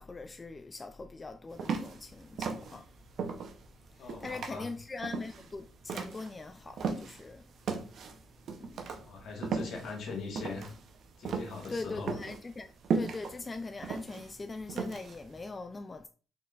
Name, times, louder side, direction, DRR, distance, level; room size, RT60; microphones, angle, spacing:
voice 1, 0.0-2.9 3.9-7.4 8.6-8.9 11.7-16.1, left 3 dB, 25° left, 0.3 m, -41 dB
sound 1, 1.5-7.3 7.6-15.4, right 5 dB, 65° right, 0.6 m, -36 dB
voice 2, 4.0-4.7 8.9-10.7 11.2-12.1, left 4 dB, 70° left, 1.5 m, -41 dB
4.4 x 3.8 x 2.3 m
cardioid pair, 90°, 0 cm